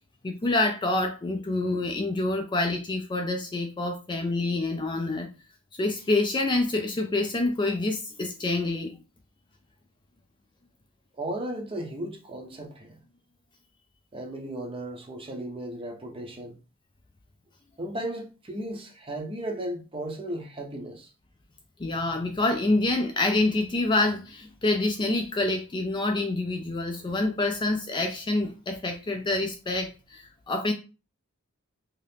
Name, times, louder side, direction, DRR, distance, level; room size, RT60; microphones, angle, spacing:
voice 1, 0.2-5.3 5.8-9.0 21.8-30.7, left 2 dB, 20° left, 0.3 m, -27 dB
voice 2, 11.2-13.0 14.1-16.6 17.8-21.1, right 1 dB, 25° right, 0.6 m, -35 dB
2.8 x 2.4 x 3.3 m
head